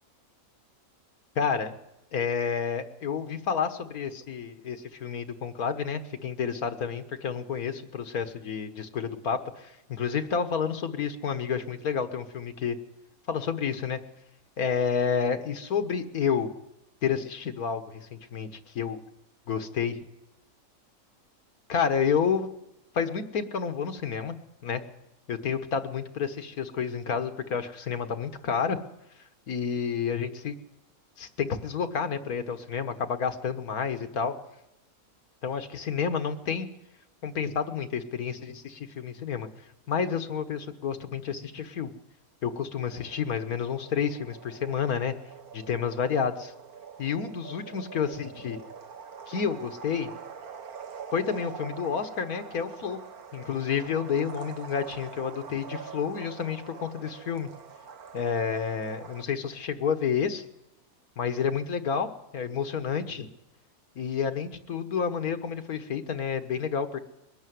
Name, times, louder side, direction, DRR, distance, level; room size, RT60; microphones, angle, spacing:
voice 1, 1.4-1.8 2.1-12.8 13.3-14.0 14.6-16.5 17.0-19.0 19.5-20.0 21.7-22.5 22.9-24.4 24.6-24.8 25.3-28.8 29.5-30.5 31.2-34.3 35.4-36.7 37.2-39.5 39.9-41.9 42.4-45.1 45.5-46.5 47.0-48.6 49.3-50.1 51.1-53.0 53.3-57.5 58.1-60.5 61.2-62.1 62.3-63.3 64.0-67.0, left 6 dB, 85° left, 9 dB, 1.8 m, -30 dB
sound 1, 42.9-59.2, right 6 dB, 85° right, 1.7 m, -44 dB
22.0 x 13.0 x 9.3 m, 0.89 s
omnidirectional pair, 1.5 m